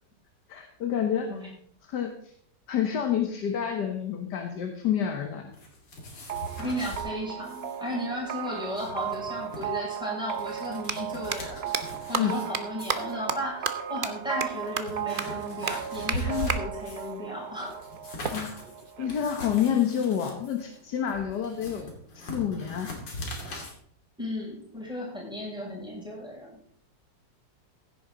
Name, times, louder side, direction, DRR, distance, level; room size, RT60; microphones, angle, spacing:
voice 1, 0.5-1.3 1.8-2.3 2.7-5.5 12.1-12.4 18.3-18.6 19.0-21.9 22.1-22.9, left 9 dB, 70° left, 5 dB, 1.8 m, -28 dB
sound 1, 5.5-7.1 7.4-7.8 8.0-8.1 8.6-9.6 10.2-12.5 12.8-13.1 13.9-14.0 14.5-17.2 17.5-23.7, left 1 dB, 85° left, 3.4 m, -40 dB
sound 2, 6.3-19.8, right 9 dB, 70° right, 0.6 m, -37 dB
voice 2, 6.6-11.7 12.1-17.8 24.2-26.5, equal, ahead, -5 dB, 6.2 m, -35 dB
sound 3, 9.6-9.7 10.7-10.9 11.3-11.4 11.7-11.8 12.1-12.2 12.5-12.6 12.9-13.0 13.3-13.4 13.7-13.8 14.0-14.1 14.4-14.5 14.8-14.9 15.2-15.3 15.7-15.8 16.1-16.2 16.5-16.6 18.2-19.3, right 5 dB, 40° right, 0.8 m, -30 dB
16.0 x 9.5 x 3.9 m, 0.64 s
omnidirectional pair, 1.9 m